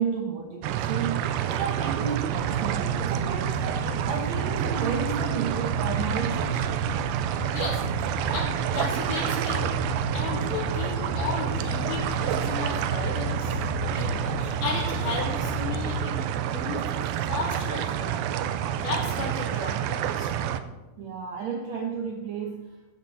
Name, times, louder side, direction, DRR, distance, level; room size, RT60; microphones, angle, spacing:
voice 1, 0.0-6.8 21.0-22.7, right 6 dB, 65° right, 2 dB, 1.8 m, -32 dB
sound 1, 0.6-20.6, right 10 dB, 85° right, 2.5 m, -28 dB
sound 2, 2.3-15.9, left 2 dB, 40° right, 3.6 m, -35 dB
voice 2, 7.5-9.8 10.1-16.8 17.3-18.2 18.8-20.3 21.4-21.5, left 4 dB, 80° left, -3 dB, 5.0 m, -34 dB
15.5 x 11.5 x 4.2 m, 1.1 s
omnidirectional pair, 4.3 m